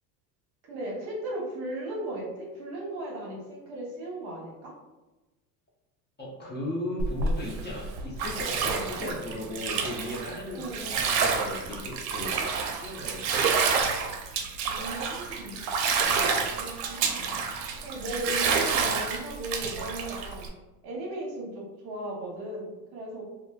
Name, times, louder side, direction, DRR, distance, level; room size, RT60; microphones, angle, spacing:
voice 1, 0.6-4.7 9.0-9.1 10.5-11.0 14.7-15.6 16.6-17.3 17.8-20.5 20.8-23.2, right 1 dB, 45° right, -2 dB, 1.0 m, -36 dB
voice 2, 6.2-12.4 12.7-13.5, left 1 dB, 20° left, -5 dB, 0.7 m, -36 dB
Bathtub (filling or washing), 7.0-20.5, right 5 dB, 80° right, 0.6 m, -29 dB
3.0 x 2.2 x 2.3 m, 1.1 s
supercardioid pair, 100°, 50 cm